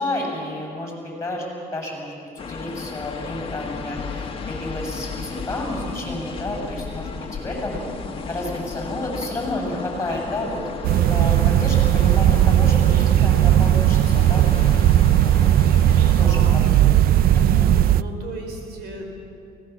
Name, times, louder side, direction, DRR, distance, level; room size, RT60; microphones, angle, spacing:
voice 1, 0.0-2.1 2.5-7.8 8.3-10.6 10.9-14.5 15.1-15.5 16.2-16.4 16.7-16.8 17.3-17.8, left 1 dB, 15° left, 0 dB, 7.5 m, -30 dB
sound 1, 2.4-16.3, left 5 dB, 35° left, 1.9 m, -34 dB
sound 2, 10.8-18.0, right 11 dB, 60° right, 0.5 m, -16 dB
voice 2, 16.1-16.8 17.9-19.2, right 2 dB, 80° right, 3 dB, 4.9 m, -36 dB
23.5 x 19.0 x 7.3 m, 2.6 s
cardioid pair, 110°, 17 cm